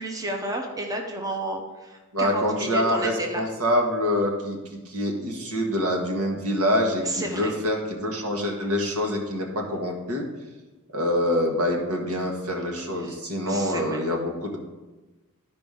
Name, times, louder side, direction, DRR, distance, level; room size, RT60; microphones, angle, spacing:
voice 1, 0.0-3.4 7.0-7.5 12.9-13.1 13.5-14.1, right 1 dB, 15° right, 2 dB, 0.8 m, -32 dB
voice 2, 2.1-10.2 10.9-14.6, left 1 dB, 90° right, 1 dB, 1.5 m, -26 dB
12.0 x 5.0 x 3.7 m, 1.2 s
head